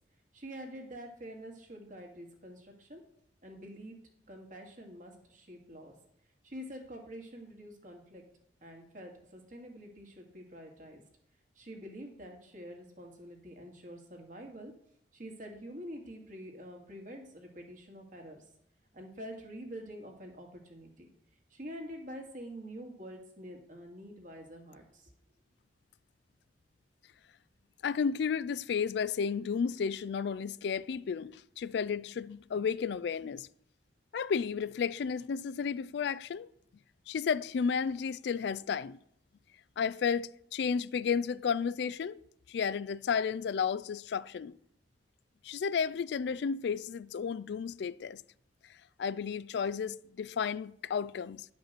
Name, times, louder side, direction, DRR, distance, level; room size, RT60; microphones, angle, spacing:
voice 1, 0.3-3.0 3.4-4.0 4.3-5.9 6.4-8.2 8.6-11.0 11.6-14.7 15.1-18.4 18.9-21.1 21.5-25.1, equal, 45° right, 2.0 m, -46 dB
voice 2, 27.8-33.5 34.1-36.5 37.1-39.0 39.8-42.2 42.5-44.5 45.4-48.2 49.0-51.5, left 6 dB, 65° left, 0.3 m, -32 dB
10.5 x 5.2 x 6.6 m
head